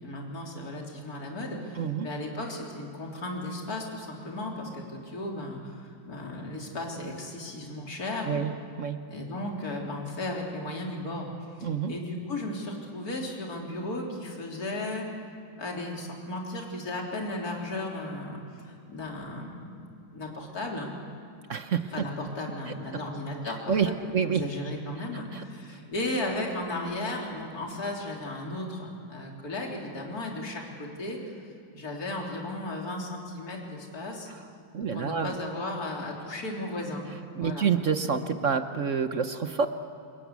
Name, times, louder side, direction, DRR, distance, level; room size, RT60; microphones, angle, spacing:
voice 1, 0.0-8.3 9.1-15.1 15.6-20.9 21.9-31.4 31.7-34.3 34.9-37.0 37.4-37.7, left 1 dB, 45° left, -1 dB, 4.0 m, -35 dB
voice 2, 1.8-2.1 8.3-8.5 8.8-9.0 11.6-11.9 21.5-21.9 23.7-24.4 25.3-25.4 34.7-35.3 37.3-39.7, right 6 dB, 50° right, 8 dB, 1.0 m, -27 dB
28.0 x 21.5 x 8.3 m, 2.6 s
omnidirectional pair, 2.2 m